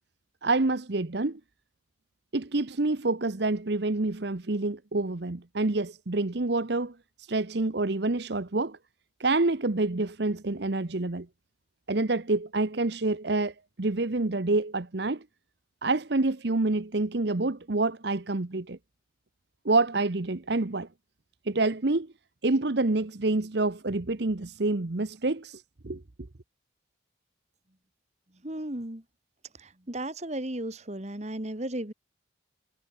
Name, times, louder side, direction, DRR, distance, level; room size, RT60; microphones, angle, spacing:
voice 1, 0.4-1.4 2.3-8.8 9.2-11.3 11.9-15.2 15.8-18.8 19.6-20.9 21.4-22.1 22.4-26.0, right 2 dB, 55° right, 1.0 m, -27 dB
voice 2, 28.4-29.0 29.6-31.9, right 1 dB, 35° right, 2.0 m, -35 dB
head